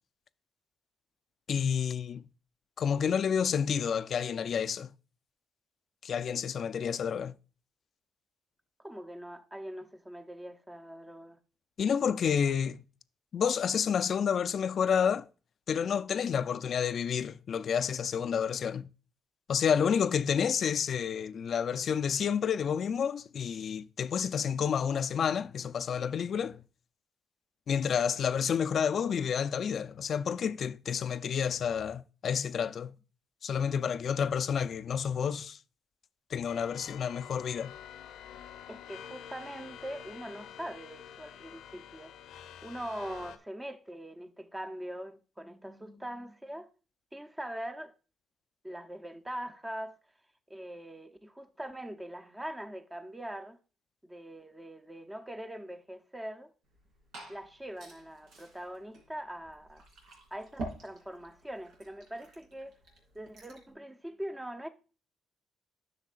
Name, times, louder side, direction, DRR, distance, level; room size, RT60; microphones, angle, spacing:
voice 1, 1.5-2.2 2.8-4.9 6.0-7.3 11.8-12.8 13.3-15.3 15.7-18.9 19.5-26.6 27.7-33.0 33.4-35.6 36.3-37.7, left 7 dB, 55° left, 0.4 m, -29 dB
voice 2, 8.8-11.4 38.7-46.7 47.1-47.9 48.6-50.0 50.5-53.6 54.0-56.5 57.3-59.8 60.3-62.8 63.1-64.7, right 1 dB, 10° right, 0.7 m, -42 dB
sound 1, 36.5-43.4, left 9 dB, 85° left, 0.7 m, -48 dB
Glass / Fill (with liquid), 56.6-63.7, right 2 dB, 85° right, 3.0 m, -48 dB
10.5 x 6.4 x 2.5 m
cardioid pair, 90°, 0 cm